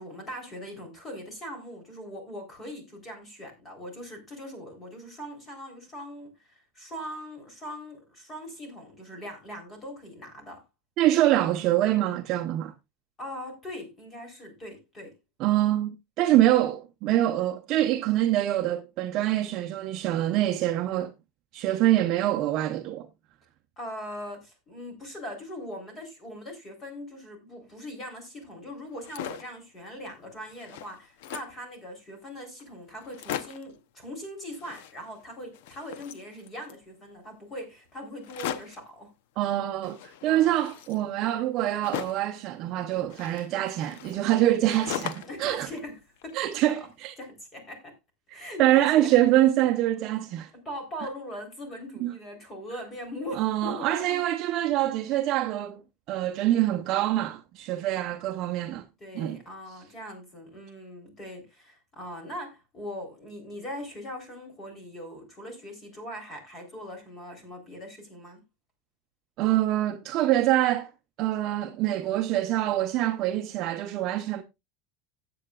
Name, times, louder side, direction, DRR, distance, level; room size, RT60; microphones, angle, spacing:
voice 1, 0.0-10.6 13.2-15.1 23.8-39.1 40.3-40.6 45.2-46.6 47.2-47.9 48.3-49.2 50.5-54.3 57.7-58.1 59.0-68.4, equal, 20° left, 3.6 m, -41 dB
voice 2, 11.0-12.7 15.4-21.1 21.5-23.1 39.4-45.7 46.3-47.1 48.3-50.5 52.0-52.1 53.3-55.8 56.1-58.8 59.1-59.4 69.4-70.9 71.2-74.4, right 14 dB, 40° right, 0.8 m, -25 dB
sound 1, 28.8-29.6 30.1-30.2 30.4-31.6 32.3-32.4 32.6-32.7 33.0-33.8 34.5-35.3 35.5-36.8 38.2-38.9 39.8-42.3 43.1-45.4 45.8-46.7, left 10 dB, 70° left, 0.8 m, -39 dB
16.5 x 7.8 x 2.4 m
supercardioid pair, 165°, 0 cm